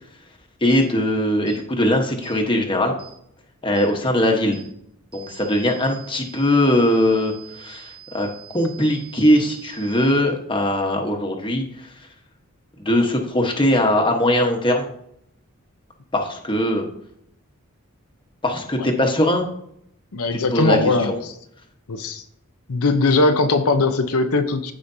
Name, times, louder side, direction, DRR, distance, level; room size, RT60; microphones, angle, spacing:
voice 1, 0.6-2.9 3.6-4.6 5.1-8.3 8.5-11.9 12.8-14.9 16.1-16.8 18.4-19.5 20.5-21.2, left 1 dB, 20° left, 2 dB, 1.1 m, -20 dB
sound 1, 0.7-0.9 1.5-1.6 2.2-2.4 3.0-3.2 3.8-3.9 4.5-4.7 5.1-10.1, right 10 dB, 45° right, 2.0 m, -45 dB
voice 2, 20.1-21.3 21.9-22.2 22.7-24.7, left 3 dB, 80° left, 7 dB, 0.7 m, -20 dB
14.5 x 5.0 x 2.7 m, 0.73 s
head